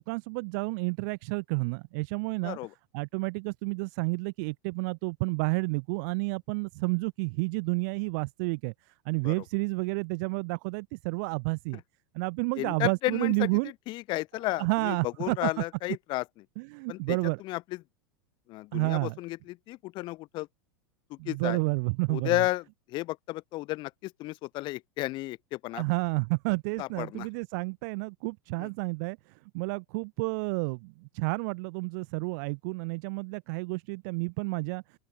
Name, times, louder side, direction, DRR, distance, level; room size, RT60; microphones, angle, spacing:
voice 1, 0.0-2.6 2.9-11.8 12.1-13.7 14.5-15.5 16.6-17.4 18.7-19.2 21.2-22.4 25.7-29.2 29.5-34.8, right 31 dB, 55° right, 0.5 m, -30 dB
voice 2, 12.6-13.5 13.9-16.2 16.9-17.2 17.4-17.6 18.5-20.5 21.1-21.6 22.1-25.8 26.8-27.3 28.6-28.7, left 19 dB, 40° left, 0.9 m, -33 dB
open air
supercardioid pair, 135°, 12 cm